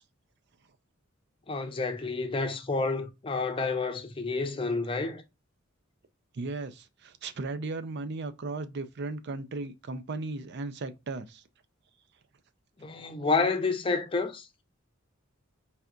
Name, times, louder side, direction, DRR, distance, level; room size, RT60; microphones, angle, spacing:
voice 1, 1.5-5.2 12.8-14.5, left 4 dB, 25° left, 0.6 m, -29 dB
voice 2, 6.3-11.4, right 3 dB, 55° right, 0.5 m, -36 dB
4.1 x 3.4 x 2.4 m
head